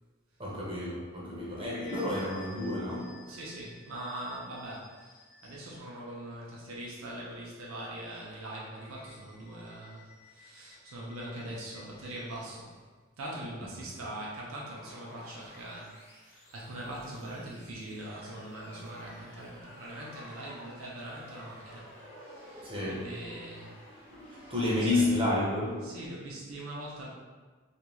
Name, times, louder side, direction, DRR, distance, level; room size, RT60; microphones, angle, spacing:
voice 1, 0.4-3.3 22.6-23.2 24.1-26.0, left 2 dB, 25° right, -5 dB, 0.6 m, -31 dB
sound 1, 1.1-5.9 8.6-12.6, left 3 dB, 35° left, 0.6 m, -54 dB
voice 2, 3.3-12.8 13.2-21.9 22.2-23.8 24.2-25.0 25.8-27.1, right 1 dB, 85° right, -5 dB, 0.5 m, -42 dB
sound 2, 14.6-25.2, equal, 60° left, 0.9 m, -52 dB
2.5 x 2.2 x 2.9 m, 1.4 s
head